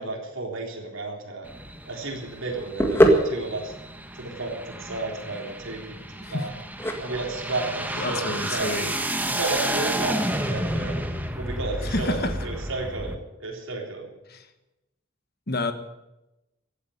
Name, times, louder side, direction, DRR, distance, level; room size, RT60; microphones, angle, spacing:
voice 1, 0.0-1.5 1.9-3.7 4.1-6.5 7.0-8.7 9.3-11.0 11.4-14.1, right 2 dB, 75° right, 0 dB, 3.7 m, -32 dB
sound 1, 1.4-13.1, right 1 dB, 10° right, 1.3 m, -31 dB
sound 2, 1.5-9.4, equal, 10° left, 1.7 m, -26 dB
voice 2, 8.0-8.9 11.8-12.3 14.3-14.4 15.5-15.7, left 2 dB, 50° left, 8 dB, 1.5 m, -28 dB
15.5 x 8.7 x 9.9 m, 0.95 s
head